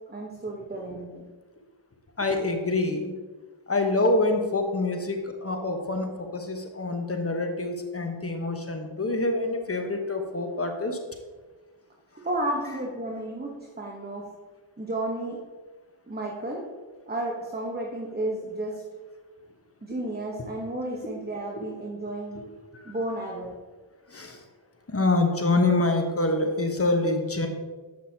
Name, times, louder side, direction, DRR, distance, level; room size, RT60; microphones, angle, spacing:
voice 1, 0.1-1.2 12.2-14.3 14.8-15.4 16.1-16.7 17.1-18.8 19.8-22.4 22.8-23.6, right 1 dB, 20° right, 0 dB, 1.0 m, -32 dB
voice 2, 2.2-3.1 3.7-11.0 21.6-21.7 24.1-24.4 24.9-27.5, left 2 dB, 30° left, 4 dB, 1.1 m, -26 dB
7.9 x 6.1 x 2.8 m, 1.4 s
cardioid pair, 45°, 49 cm